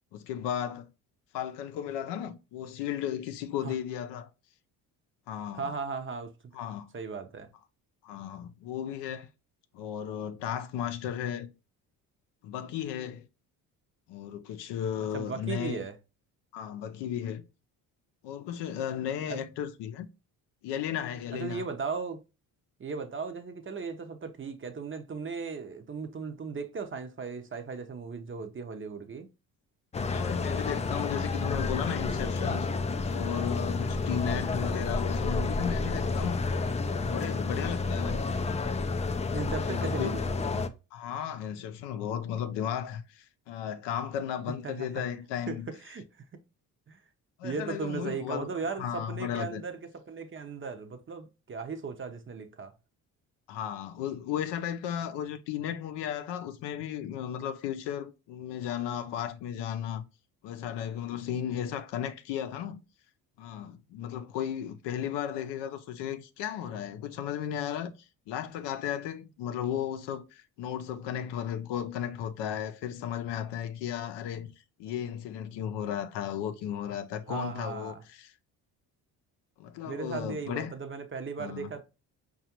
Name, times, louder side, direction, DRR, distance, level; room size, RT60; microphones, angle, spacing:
voice 1, 0.1-0.9 1.3-4.3 5.3-5.7 6.5-6.9 8.0-9.3 9.7-11.5 12.4-13.3 14.1-15.8 16.5-17.5 18.2-20.1 20.6-21.6 30.0-32.7 33.1-36.4 36.9-38.2 39.5-40.1 40.9-45.7 47.4-48.5 48.8-49.6 53.5-60.0 60.4-62.8 63.4-67.9 68.3-74.5 74.8-78.3 79.6-80.7 81.4-81.7, left 9 dB, 70° left, 0.6 m, -35 dB
voice 2, 5.5-6.3 6.9-7.5 15.1-16.0 19.3-19.4 21.3-22.2 22.8-29.3 39.3-40.7 44.6-45.0 45.5-45.6 45.8-46.0 46.9-47.0 47.4-52.7 77.3-78.0 79.9-81.8, right 5 dB, 30° right, 0.6 m, -37 dB
sound 1, 29.9-40.7, left 3 dB, 15° left, 0.3 m, -30 dB
4.8 x 2.4 x 2.8 m
supercardioid pair, 65°, 43 cm